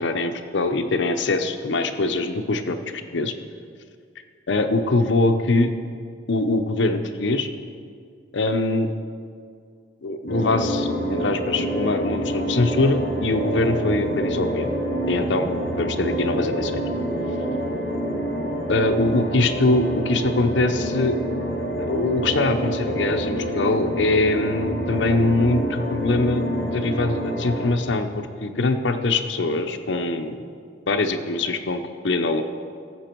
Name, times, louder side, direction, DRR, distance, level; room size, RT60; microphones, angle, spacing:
voice 1, 0.0-2.8 3.1-3.3 4.5-5.7 6.3-7.5 8.3-8.9 10.0-14.7 15.1-15.5 15.8-16.8 18.7-21.2 21.8-30.4 30.9-32.4, left 2 dB, 75° left, 7 dB, 0.7 m, -23 dB
sound 1, 10.3-27.7, right 1 dB, 50° left, 2.1 m, -27 dB
13.0 x 7.6 x 4.5 m, 2.2 s
head